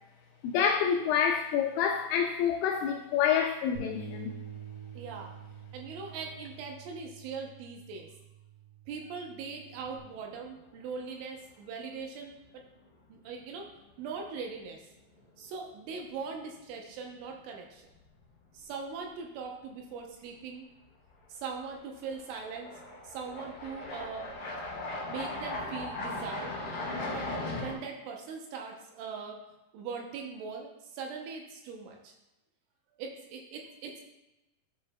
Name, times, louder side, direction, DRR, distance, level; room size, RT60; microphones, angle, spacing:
voice 1, 0.4-4.4, left 8 dB, 90° left, 4 dB, 2.6 m, -27 dB
Bass guitar, 3.7-10.0, right 5 dB, 55° right, 1.3 m, -47 dB
voice 2, 4.9-5.3 5.7-8.1 8.9-12.6 13.1-14.9 15.4-17.9 18.5-20.7 21.3-24.3 25.1-26.6 27.1-29.4 29.7-32.2 33.0-34.0, right 5 dB, 80° right, 1 dB, 3.1 m, -41 dB
sound 1, 9.8-10.4 10.8-10.9 13.8-13.9 15.2-15.4 15.8-15.9 21.2-21.3 22.1-27.7, left 2 dB, 30° left, 2.9 m, -38 dB
13.0 x 5.5 x 2.2 m, 0.97 s
omnidirectional pair, 5.8 m